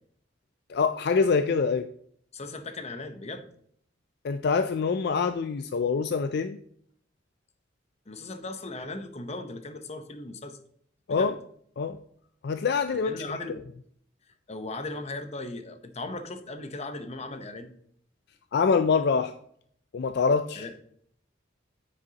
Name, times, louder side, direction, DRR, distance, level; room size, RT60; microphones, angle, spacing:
voice 1, 0.7-1.9 4.2-6.6 11.1-11.3 11.8-12.0 12.4-13.4 18.5-19.3 19.9-20.7, left 5 dB, 55° left, 9 dB, 0.4 m, -25 dB
voice 2, 2.3-3.4 8.1-10.6 11.1-11.3 12.9-13.5 14.5-17.7 20.6-20.7, left 2 dB, 35° left, 8 dB, 0.8 m, -37 dB
9.5 x 7.8 x 2.9 m, 0.65 s
head